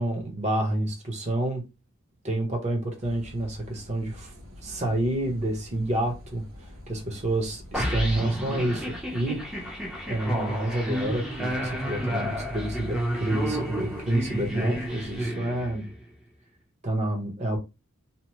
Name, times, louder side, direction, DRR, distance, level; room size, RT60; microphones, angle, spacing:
voice 1, 0.0-1.7 2.2-4.3 4.6-9.8 10.1-15.9 16.8-17.6, right 1 dB, 35° right, 0.8 m, -29 dB
Car passing by / Idling / Accelerating revving vroom, 3.0-15.3, left 2 dB, 80° right, 1.4 m, -45 dB
sound 1, 7.7-16.0, equal, 5° right, 0.6 m, -31 dB
2.9 x 2.0 x 3.1 m
head